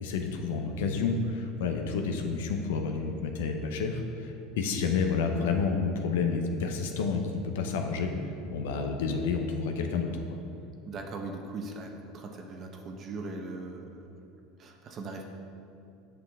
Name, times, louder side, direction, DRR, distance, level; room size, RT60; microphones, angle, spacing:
voice 1, 0.0-8.1 8.5-10.1, left 5 dB, 85° left, 4 dB, 0.6 m, -30 dB
voice 2, 10.9-14.1 14.6-15.2, right 3 dB, 40° right, 3 dB, 0.8 m, -39 dB
7.8 x 5.5 x 3.5 m, 2.6 s
supercardioid pair, 110°, 0 cm